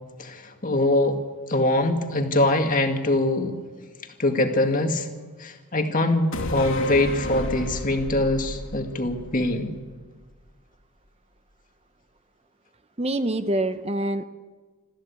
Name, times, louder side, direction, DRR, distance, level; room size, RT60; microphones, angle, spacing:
voice 1, 0.2-1.2 1.5-3.6 4.2-5.1 5.4-9.7, left 2 dB, 35° left, 4 dB, 2.0 m, -23 dB
sound 1, 6.3-9.9 10.2-10.3, left 1 dB, 60° left, 2.6 m, -31 dB
voice 2, 13.0-14.2, right 1 dB, 25° right, 10 dB, 0.8 m, -25 dB
26.5 x 14.0 x 8.4 m, 1.4 s
head